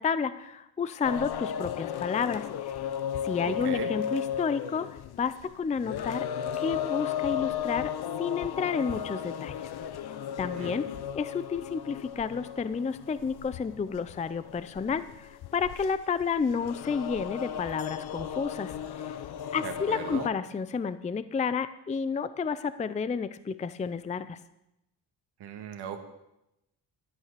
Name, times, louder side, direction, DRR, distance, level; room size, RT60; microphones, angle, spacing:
voice 1, 0.0-2.9 3.2-4.9 5.2-6.3 6.6-7.9 8.2-9.7 10.1-10.9 11.1-19.2 19.5-24.4, left 6 dB, 20° left, 14 dB, 0.4 m, -31 dB
sound 1, 1.0-20.3, left 9 dB, 70° left, 0.8 m, -35 dB
voice 2, 3.4-3.9 10.5-10.8 19.6-20.3 25.4-26.1, right 8 dB, 75° right, 6 dB, 1.6 m, -38 dB
12.0 x 8.1 x 6.7 m, 0.89 s
cardioid pair, 110°, 40 cm